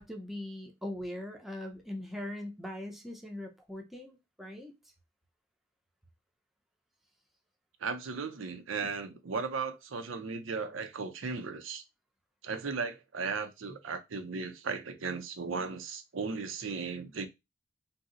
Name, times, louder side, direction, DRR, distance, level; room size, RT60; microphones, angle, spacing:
voice 1, 0.0-4.7 8.8-8.9, left 1 dB, ahead, 0.5 m, -41 dB
voice 2, 7.8-11.8 12.4-17.3, right 5 dB, 90° right, 0.5 m, -36 dB
2.7 x 2.0 x 3.7 m
head